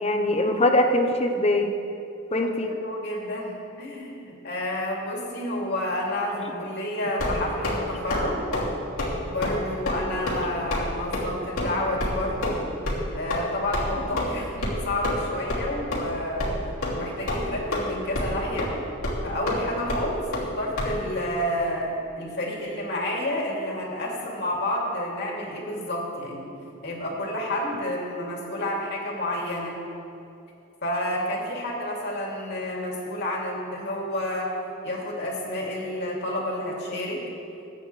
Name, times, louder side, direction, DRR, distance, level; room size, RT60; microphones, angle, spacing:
voice 1, 0.0-1.7 2.3-2.7, left 1 dB, 30° left, 4 dB, 0.9 m, -22 dB
voice 2, 2.4-8.4 9.2-12.6 13.1-16.5 16.9-18.7 19.2-26.5 26.8-29.8 30.8-34.5 34.8-37.2, left 1 dB, 55° left, -3 dB, 2.7 m, -30 dB
sound 1, 7.2-7.8 8.1-8.3 8.5-8.7 9.0-9.1 9.4-9.6 9.9-10.0 10.3-10.4 10.7-10.9 11.1-11.2 11.6-11.7 12.0-12.1 12.4-12.6 12.9-13.0 13.3-13.4 13.7-13.8 14.2-14.3 14.6-14.8 15.0-15.2 15.5-15.6 15.9-16.0 16.4-16.5 16.8-17.0 17.3-17.8 18.1-18.3 18.6-18.7 19.0-19.2 19.5-19.6 19.9-20.0 20.3-20.5 20.8-20.9, left 2 dB, 90° left, 2.9 m, -27 dB
22.0 x 9.4 x 3.3 m, 2.7 s
head